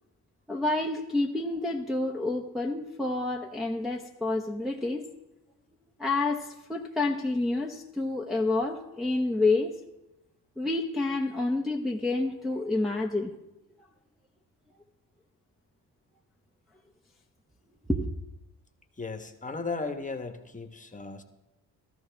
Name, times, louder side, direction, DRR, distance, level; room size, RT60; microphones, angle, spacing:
voice 1, 0.5-5.1 6.0-9.7 10.6-13.3 17.9-18.1, left 2 dB, ahead, -2 dB, 0.9 m, -28 dB
voice 2, 19.0-21.2, left 4 dB, 20° left, 6 dB, 1.3 m, -36 dB
14.0 x 14.0 x 3.5 m, 0.94 s
cardioid pair, 95°, 40 cm